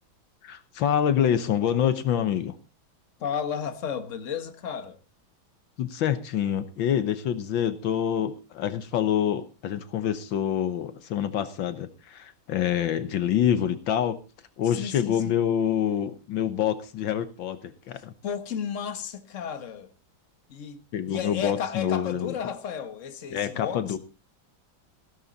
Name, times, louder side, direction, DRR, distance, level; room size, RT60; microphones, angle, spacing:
voice 1, 0.4-2.6 5.8-14.2 14.6-18.1 20.9-22.3 23.3-24.0, left 9 dB, 75° left, 1.7 m, -26 dB
voice 2, 3.2-5.0 14.7-15.4 17.9-19.9 20.5-23.8, left 7 dB, 40° left, 1.6 m, -33 dB
16.5 x 12.5 x 4.0 m
omnidirectional pair, 2.1 m